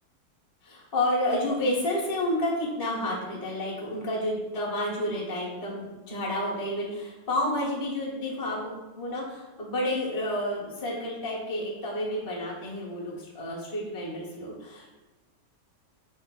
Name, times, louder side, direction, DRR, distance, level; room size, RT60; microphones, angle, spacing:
voice 1, 0.6-15.0, left 1 dB, 25° left, -5 dB, 0.4 m, -30 dB
5.1 x 2.5 x 2.2 m, 1.1 s
omnidirectional pair, 1.9 m